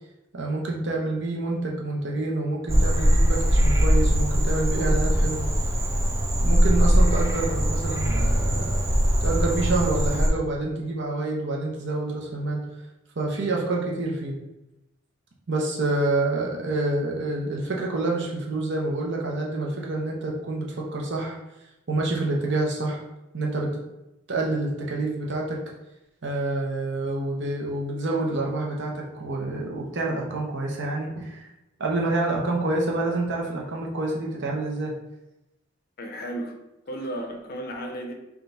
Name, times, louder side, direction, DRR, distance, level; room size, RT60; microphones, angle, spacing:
voice 1, 0.3-5.5 6.4-8.8 9.2-12.6 13.2-14.4 15.5-20.7 20.9-21.4 21.9-23.0 23.3-23.7 24.3-25.6 26.2-31.5 31.8-34.9, right 2 dB, 60° right, -2 dB, 0.8 m, -27 dB
Frog, 2.7-10.3, equal, 15° right, 0.4 m, -21 dB
voice 2, 36.0-36.5 36.9-38.1, right 1 dB, 50° left, 3 dB, 0.6 m, -33 dB
3.6 x 2.3 x 3.9 m, 0.94 s
head